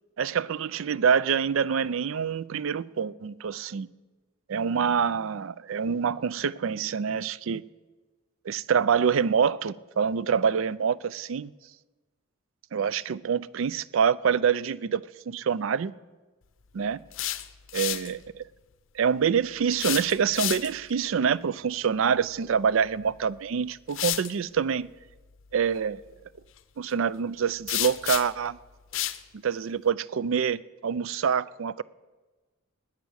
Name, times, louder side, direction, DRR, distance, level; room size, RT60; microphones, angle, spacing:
voice 1, 0.2-3.9 4.5-7.6 8.4-11.5 12.7-15.9 16.7-17.0 17.7-18.5 18.9-24.9 25.5-26.0 26.8-28.6 29.3-31.8, right 7 dB, 70° right, 19 dB, 0.4 m, -26 dB
sound 1, 16.9-18.1 19.7-20.9 23.0-23.1 23.9-24.3 27.7-28.5 28.9-29.2, left 14 dB, 65° left, 0.6 m, -30 dB
20.0 x 8.2 x 6.4 m, 1.3 s
head